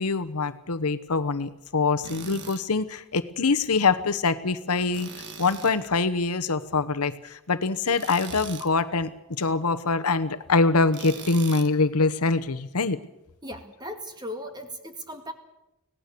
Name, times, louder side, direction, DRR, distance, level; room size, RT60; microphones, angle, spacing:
voice 1, 0.0-5.1 5.4-9.1 9.4-13.0, left 4 dB, 80° left, 11 dB, 1.0 m, -24 dB
Tools, 2.0-2.6 4.9-5.8 8.0-8.7 10.9-11.7, right 5 dB, 50° right, 1.6 m, -40 dB
voice 2, 13.4-15.3, equal, 20° right, 6 dB, 2.1 m, -37 dB
25.0 x 17.5 x 6.8 m, 0.94 s
head